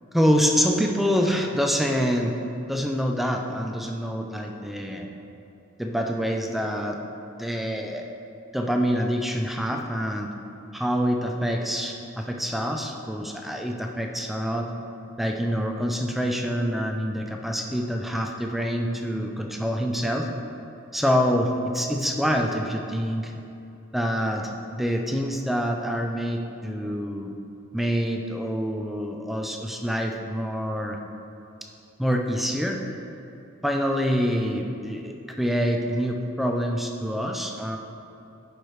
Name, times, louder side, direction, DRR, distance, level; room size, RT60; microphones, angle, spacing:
voice 1, 0.1-2.4 2.7-5.1 5.8-7.0 7.4-8.1 8.5-10.3 10.7-14.7 15.2-20.3 20.9-23.3 23.9-27.3 27.7-31.0 32.0-32.8 33.6-37.8, equal, ahead, 2 dB, 0.4 m, -26 dB
10.5 x 5.0 x 3.1 m, 2.8 s
head